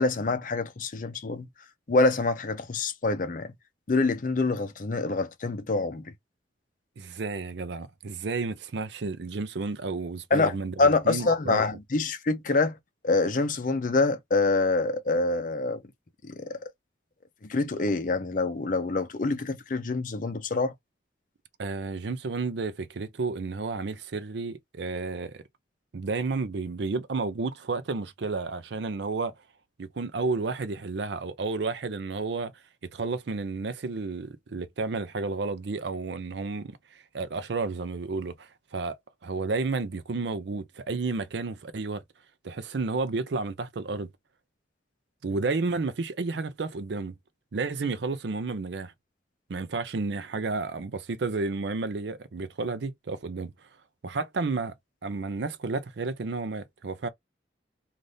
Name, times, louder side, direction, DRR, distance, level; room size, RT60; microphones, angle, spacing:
voice 1, 0.0-1.5 1.9-3.5 3.9-6.1 10.3-12.8 13.0-15.8 16.2-16.7 17.5-20.7, left 3 dB, 45° left, 0.6 m, -26 dB
voice 2, 7.0-11.6 21.6-25.4 25.9-29.3 29.8-32.5 32.9-39.0 39.2-42.0 42.4-44.1 45.2-47.1 47.5-48.9 49.5-53.5 54.0-54.7 55.0-57.1, right 3 dB, 70° right, 0.5 m, -31 dB
2.6 x 2.5 x 3.3 m
head